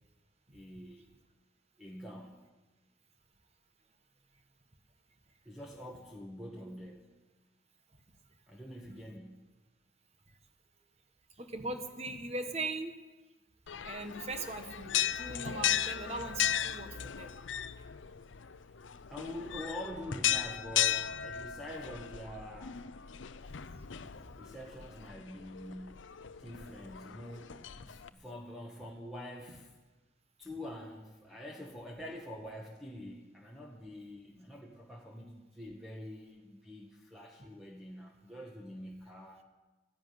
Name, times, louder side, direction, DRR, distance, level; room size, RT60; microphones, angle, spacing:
voice 1, 0.5-1.1 1.8-2.4 5.4-7.1 8.5-9.5 19.1-22.8 24.4-26.1 26.4-29.7 30.4-39.4, left 1 dB, ahead, -2 dB, 1.3 m, -46 dB
voice 2, 11.4-12.9 13.8-16.9 17.2-17.3 23.7-23.8, right 2 dB, 35° right, 7 dB, 1.4 m, -39 dB
sound 1, 13.7-28.1, left 10 dB, 80° left, 0.6 m, -36 dB
13.5 x 11.0 x 9.4 m, 1.2 s
head